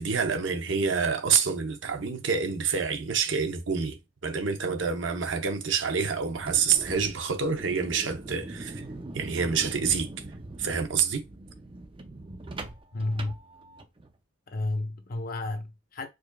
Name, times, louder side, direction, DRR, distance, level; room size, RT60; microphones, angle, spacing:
voice 1, 0.0-4.0 4.2-8.8 9.1-10.1 10.6-11.3, right 6 dB, 65° right, 0.7 m, -27 dB
sound 1, 6.3-14.1, right 2 dB, 25° right, 0.4 m, -42 dB
voice 2, 12.9-13.4 14.5-16.1, left 2 dB, 45° left, 0.7 m, -31 dB
4.8 x 2.4 x 2.2 m
head